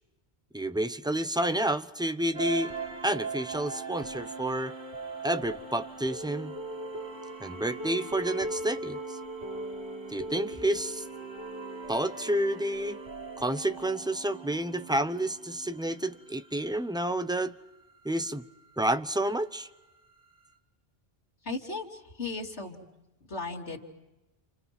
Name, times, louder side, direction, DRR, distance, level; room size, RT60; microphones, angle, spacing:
voice 1, 0.5-2.7 3.0-4.7 5.2-6.6 7.4-9.2 10.1-11.0 11.9-13.0 13.4-17.6 18.0-18.4 18.8-19.7, right 1 dB, 5° right, 0.7 m, -30 dB
sound 1, 2.3-16.5, right 3 dB, 75° right, 4.0 m, -39 dB
voice 2, 21.4-21.8 22.2-22.8 23.3-23.8, left 3 dB, 85° left, 3.4 m, -35 dB
29.5 x 29.0 x 6.1 m
omnidirectional pair, 1.1 m